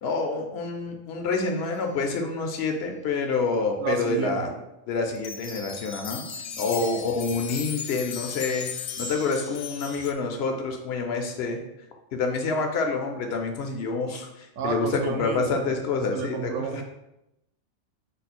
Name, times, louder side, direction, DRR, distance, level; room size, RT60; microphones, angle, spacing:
voice 1, 0.0-4.5 4.9-6.2 6.6-8.7 9.0-11.6 12.1-16.8, left 4 dB, 55° left, 3 dB, 0.8 m, -27 dB
voice 2, 3.8-4.4 6.5-6.6 14.6-16.8, right 6 dB, 70° right, 5 dB, 0.9 m, -31 dB
sound 1, 5.1-10.1, left 6 dB, 80° left, 1.0 m, -37 dB
5.5 x 2.2 x 4.2 m, 0.89 s
omnidirectional pair, 1.4 m